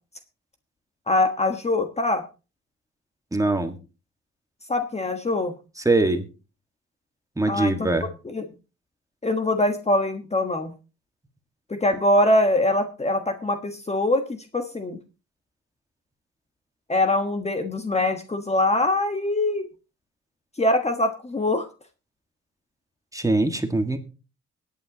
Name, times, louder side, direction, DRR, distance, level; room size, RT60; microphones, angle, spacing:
voice 1, 1.1-2.2 4.7-5.5 7.5-7.9 8.2-8.5 9.2-10.7 11.7-14.2 14.5-15.0 16.9-19.6 20.6-21.7, left 1 dB, 20° left, 7 dB, 1.3 m, -23 dB
voice 2, 3.3-3.8 5.9-6.2 7.4-8.1 23.1-24.0, right 2 dB, 10° right, 6 dB, 1.8 m, -22 dB
22.0 x 9.0 x 2.9 m, 0.32 s
cardioid pair, 90°, 30 cm